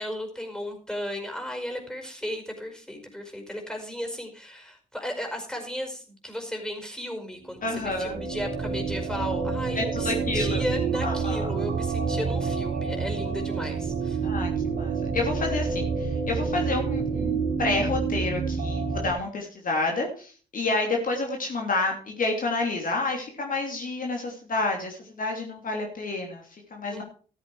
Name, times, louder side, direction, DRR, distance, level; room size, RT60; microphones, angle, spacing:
voice 1, 0.0-14.2 26.9-27.0, equal, 5° left, 3 dB, 5.1 m, -35 dB
sound 1, 7.5-19.1, right 5 dB, 70° right, 2.6 m, -28 dB
voice 2, 7.6-8.2 9.7-10.6 11.0-11.5 14.2-26.4 26.7-27.0, left 3 dB, 50° left, 1 dB, 3.0 m, -29 dB
13.5 x 8.3 x 4.8 m, 0.40 s
hypercardioid pair, 45°, 18 cm